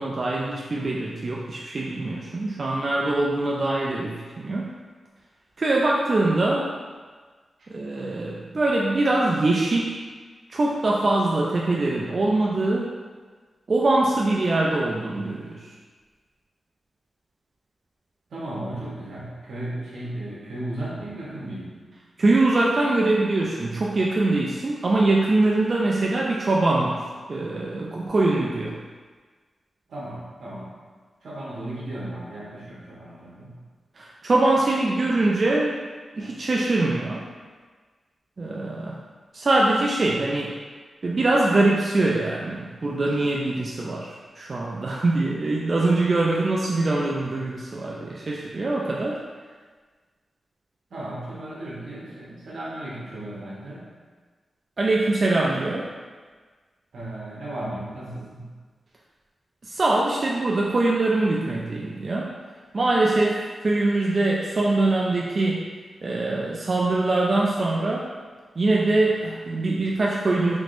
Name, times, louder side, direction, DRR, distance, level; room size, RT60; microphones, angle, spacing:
voice 1, 0.0-4.7 5.6-6.7 7.7-9.9 10.5-12.9 13.7-15.6 22.2-27.0 27.3-28.8 34.0-35.8 36.2-37.2 38.4-39.0 39.3-40.5 41.0-49.2 54.8-55.9 59.7-62.3 62.7-65.7 66.0-68.1 68.6-70.6, right 2 dB, 40° right, -3 dB, 0.3 m, -23 dB
voice 2, 18.3-21.7 29.9-30.7 31.2-33.5 50.9-53.9 56.9-58.5, right 1 dB, 80° right, -6 dB, 0.9 m, -35 dB
3.4 x 2.9 x 2.5 m, 1.5 s
wide cardioid pair, 125°, 0 cm